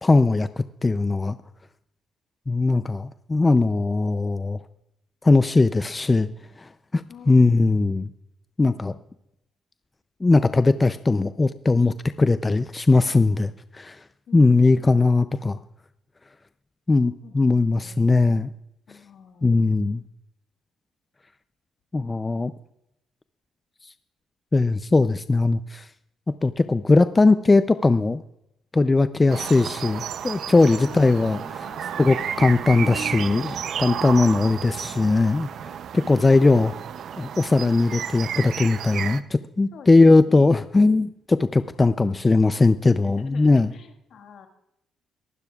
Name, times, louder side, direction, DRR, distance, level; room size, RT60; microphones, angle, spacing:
voice 1, 0.0-1.4 2.5-4.6 5.2-6.3 6.6-8.1 8.6-8.9 10.2-14.0 14.3-15.6 16.9-18.5 19.4-20.0 21.9-22.5 23.8-23.9 24.5-25.9 26.3-28.2 28.7-31.7 32.0-36.7 37.2-43.7, left 3 dB, 25° left, 12 dB, 0.4 m, -19 dB
voice 2, 7.1-7.7 14.3-14.9 17.2-17.4 17.7-18.2 18.9-19.5 26.6-26.7 30.7-32.0 34.4-35.0 35.3-35.6 39.7-40.0 40.3-40.5 42.8-44.5, left 6 dB, 70° left, 5 dB, 1.7 m, -46 dB
Nature Birdsong, 29.3-39.2, right 8 dB, 65° right, 0.6 m, -32 dB
23.5 x 12.0 x 2.4 m, 0.82 s
cardioid pair, 90°, 0 cm